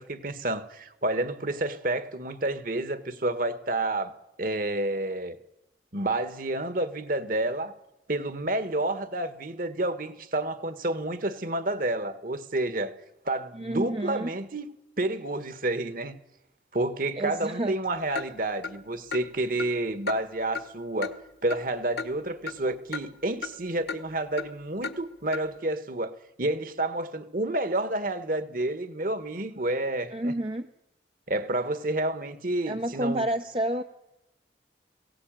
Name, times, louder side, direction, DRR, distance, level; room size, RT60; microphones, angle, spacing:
voice 1, 0.0-5.4 5.9-7.8 8.1-12.9 13.2-14.7 15.0-16.2 16.7-21.2 21.4-30.4 31.3-33.3, right 2 dB, 45° right, 1.6 m, -29 dB
voice 2, 13.5-14.3 17.2-17.7 30.1-30.7 32.7-33.8, right 1 dB, 30° right, 0.7 m, -29 dB
Clock, 18.2-18.3 18.6-18.7 19.1-19.2 19.6-19.7 20.1-20.2 20.5-20.7 21.0-21.1 21.5-21.6 22.0-22.1 22.5-22.6 22.9-23.0 23.4-23.5 23.9-24.0 24.4-24.5 24.8-25.0 25.3-25.4, left 5 dB, 60° left, 1.4 m, -34 dB
21.0 x 17.0 x 9.0 m
head